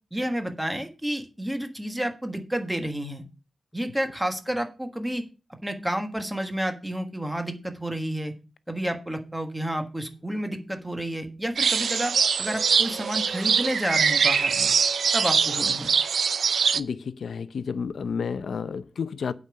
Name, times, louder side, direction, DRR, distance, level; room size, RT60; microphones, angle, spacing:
voice 1, 0.1-3.2 3.7-5.2 5.6-8.3 8.7-14.7 15.1-15.9, right 1 dB, 5° right, 1.4 m, -30 dB
sound 1, 11.6-16.8, right 6 dB, 80° right, 0.5 m, -23 dB
voice 2, 16.7-19.3, left 6 dB, 75° left, 0.6 m, -31 dB
8.4 x 5.2 x 6.8 m
wide cardioid pair, 165°, 0 cm